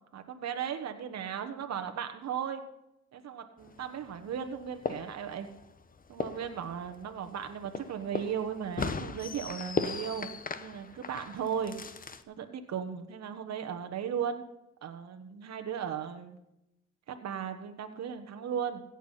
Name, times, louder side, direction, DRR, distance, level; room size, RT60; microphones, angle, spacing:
voice 1, 0.1-2.6 3.1-5.5 6.1-10.3 10.6-11.8 12.3-14.4 14.8-16.4 17.1-18.8, right 8 dB, 60° right, 7 dB, 1.3 m, -36 dB
sound 1, 3.6-12.2, left 4 dB, 30° left, 0.9 m, -38 dB
16.5 x 7.3 x 5.7 m, 0.86 s
cardioid pair, 90°, 30 cm